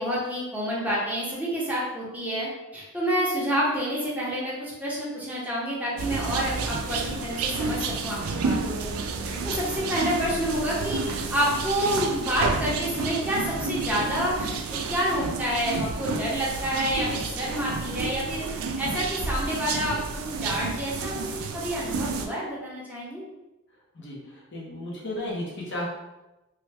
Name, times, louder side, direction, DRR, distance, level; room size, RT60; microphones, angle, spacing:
voice 1, 0.0-8.9 9.2-21.3 21.5-23.2, equal, 5° right, -7 dB, 0.7 m, -28 dB
sound 1, 6.0-22.3, right 4 dB, 80° right, 0.4 m, -30 dB
voice 2, 23.9-25.9, left 1 dB, 55° left, -4 dB, 0.9 m, -34 dB
3.1 x 2.2 x 3.3 m, 1.0 s
head